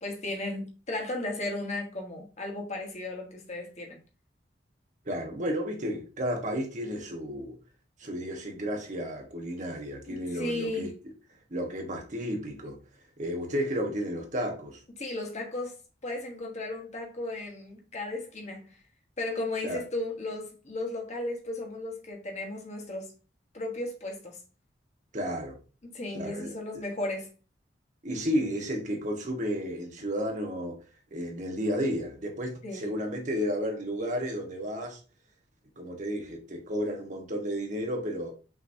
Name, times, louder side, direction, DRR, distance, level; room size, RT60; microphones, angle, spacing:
voice 1, 0.0-4.0 10.1-10.9 15.0-18.7 19.2-23.1 23.5-24.4 25.8-27.3 32.6-32.9, left 2 dB, 40° left, 1.2 m, -35 dB
voice 2, 5.0-7.6 8.0-10.9 11.5-12.8 13.2-14.8 19.6-19.8 25.1-25.6 26.1-26.8 28.0-30.8 31.1-35.0 35.8-38.3, equal, 40° right, 1.1 m, -32 dB
5.9 x 2.9 x 2.6 m
head